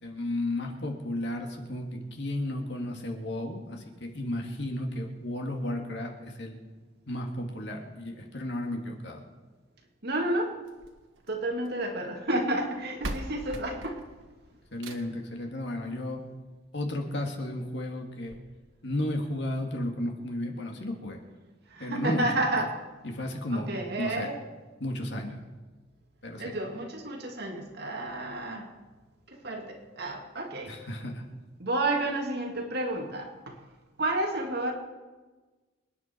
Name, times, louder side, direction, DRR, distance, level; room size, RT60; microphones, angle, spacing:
voice 1, 0.0-6.6 7.1-9.2 14.7-16.2 16.7-18.4 18.8-21.2 21.8-22.3 23.0-23.7 24.0-24.3 24.8-25.4 26.2-26.5 30.7-31.2, left 1 dB, 65° left, 2 dB, 2.2 m, -33 dB
voice 2, 10.0-10.5 11.3-14.0 21.7-22.7 23.5-24.4 26.4-28.7 29.3-30.8 31.6-33.6 34.0-34.7, right 1 dB, 55° right, 1 dB, 2.3 m, -31 dB
sound 1, 10.6-11.9 12.7-12.8 13.0-15.3 16.6-16.7 17.2-17.3 17.6-17.7 18.3-18.4, right 1 dB, 85° right, 1.6 m, -40 dB
26.5 x 10.0 x 4.6 m, 1.3 s
head